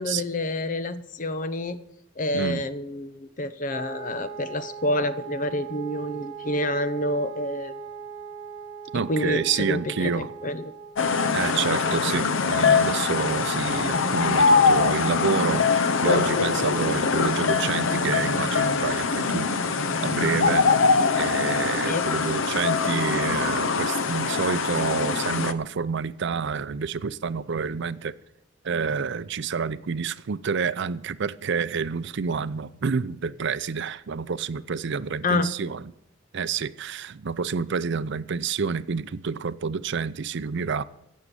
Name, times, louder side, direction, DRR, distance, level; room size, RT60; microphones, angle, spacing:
voice 1, 0.0-1.8 2.2-7.8 8.9-10.7 21.0-21.1 21.8-22.0 35.2-35.5, left 1 dB, 45° left, 12 dB, 0.8 m, -28 dB
Wind instrument woodwind instrument, 3.7-11.1, right 6 dB, 20° right, 6.2 m, -40 dB
voice 2, 8.9-10.3 11.3-19.5 20.0-20.7 21.2-28.1 28.6-35.8 36.3-40.8, right 5 dB, 65° right, 15 dB, 0.5 m, -28 dB
sound 1, 11.0-25.5, left 4 dB, 80° left, 0.7 m, -23 dB
16.0 x 7.3 x 6.9 m, 0.80 s
head